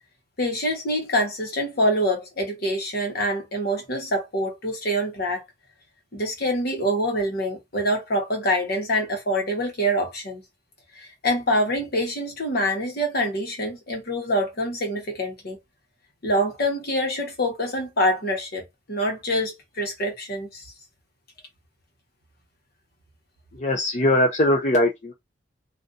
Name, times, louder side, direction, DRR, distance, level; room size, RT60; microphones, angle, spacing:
voice 1, 0.4-5.4 6.1-10.4 10.9-15.6 16.2-20.6, equal, 60° left, 1.2 m, -25 dB
voice 2, 23.5-25.1, left 1 dB, 40° left, 0.7 m, -21 dB
4.0 x 2.6 x 2.5 m
head